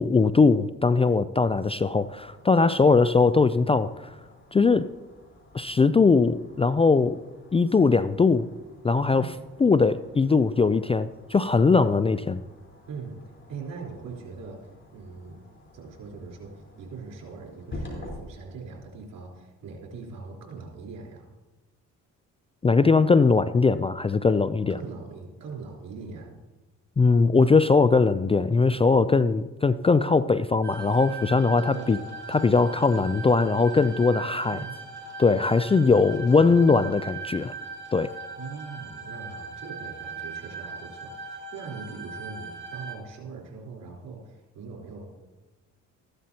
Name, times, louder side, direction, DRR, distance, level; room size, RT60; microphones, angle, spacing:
voice 1, 0.0-4.1 4.5-4.9 5.5-7.2 7.5-8.5 8.8-9.3 9.6-12.4 22.6-24.7 27.0-32.0 32.3-34.6 35.2-37.5 37.9-38.1, left 4 dB, 20° left, 14 dB, 0.3 m, -20 dB
sound 1, 1.8-18.2, left 1 dB, 35° left, 4.0 m, -48 dB
voice 2, 12.9-13.2 13.5-15.4 15.7-21.3 24.7-26.3 31.5-32.0 34.5-34.8 35.8-36.0 36.3-36.6 38.4-45.1, right 4 dB, 70° right, -3 dB, 3.9 m, -41 dB
sound 2, 30.6-43.0, right 4 dB, 30° right, 3.2 m, -39 dB
14.5 x 11.0 x 2.9 m, 1.1 s
supercardioid pair, 65°, 34 cm